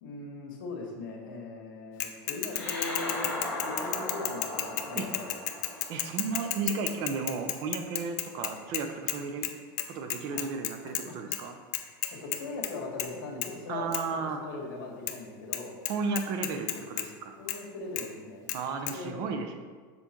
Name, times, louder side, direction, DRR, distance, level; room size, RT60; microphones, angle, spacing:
voice 1, 0.0-3.3 3.6-5.3 10.3-10.4 11.0-11.2 12.1-15.8 17.4-18.4 18.9-19.2, left 3 dB, 80° left, 0 dB, 1.8 m, -40 dB
Bicycle / Mechanisms, 2.0-9.2 9.4-9.5 9.8-11.0 11.3-11.4 11.7-12.7 13.0-13.2 13.4-13.5 13.9-14.0 15.1-15.2 15.5-15.6 15.9-17.1 17.5-17.6 18.0-18.1 18.5-18.6 18.9-19.0, left 13 dB, 55° left, 0.5 m, -32 dB
sound 1, 2.5-7.3, left 1 dB, 10° left, 1.7 m, -38 dB
voice 2, 5.9-9.5 9.9-11.6 13.7-14.4 15.9-17.3 18.5-19.5, right 4 dB, 40° right, 6 dB, 0.7 m, -34 dB
7.1 x 4.2 x 4.5 m, 1.5 s
supercardioid pair, 170°, 11 cm